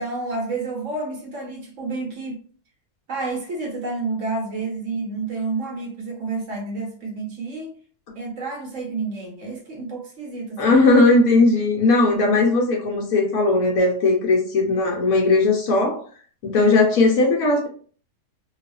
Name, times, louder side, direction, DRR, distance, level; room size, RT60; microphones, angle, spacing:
voice 1, 0.0-2.4 3.1-7.8 8.1-10.8 16.6-16.9, right 3 dB, 60° right, 1.0 m, -30 dB
voice 2, 10.6-16.0 16.4-17.7, left 3 dB, 65° left, 1.1 m, -18 dB
2.7 x 2.4 x 2.3 m
omnidirectional pair, 1.7 m